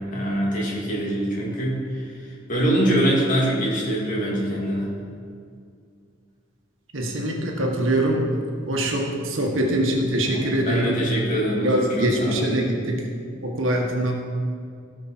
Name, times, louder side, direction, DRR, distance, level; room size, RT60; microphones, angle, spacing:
voice 1, 0.0-2.0 2.5-4.9 10.3-12.5, right 1 dB, 45° left, -4 dB, 2.7 m, -24 dB
voice 2, 6.9-8.2 8.6-11.0 11.6-13.0 13.4-14.1, right 1 dB, 85° right, 0 dB, 1.7 m, -23 dB
16.5 x 5.9 x 4.5 m, 2.2 s
head